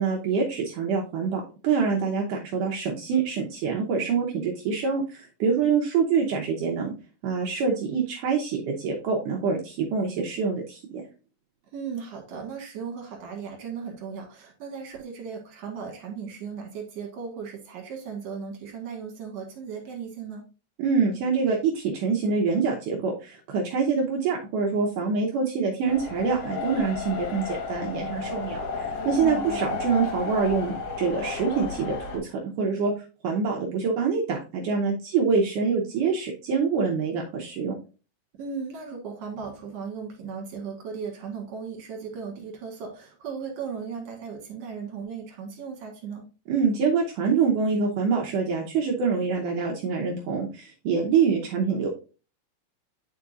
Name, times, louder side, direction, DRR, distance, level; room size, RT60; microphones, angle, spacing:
voice 1, 0.0-6.9 7.2-10.8 20.8-37.8 46.5-51.9, right 5 dB, 80° right, -1 dB, 1.8 m, -25 dB
voice 2, 11.7-20.5 29.2-29.7 38.3-46.3, right 6 dB, 60° right, 1 dB, 2.1 m, -36 dB
sound 1, 25.8-32.2, left 4 dB, 65° left, 1.5 m, -32 dB
9.4 x 4.7 x 2.5 m, 0.33 s
omnidirectional pair, 4.8 m